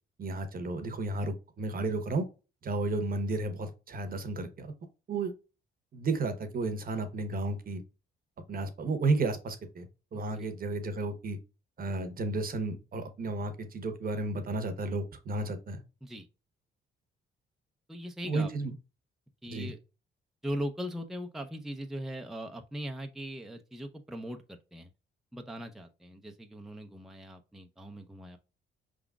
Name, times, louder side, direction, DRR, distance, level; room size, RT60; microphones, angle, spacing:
voice 1, 0.2-2.3 2.6-4.7 5.1-5.3 5.9-7.8 8.5-11.4 11.8-15.8 18.3-18.7 19.5-19.7, right 2 dB, 45° right, 1.0 m, -32 dB
voice 2, 10.1-10.5 16.0-16.3 17.9-18.5 19.4-19.8 20.4-24.9 25.3-28.4, equal, ahead, 0.6 m, -40 dB
4.8 x 3.7 x 2.3 m
cardioid pair, 90°, 20 cm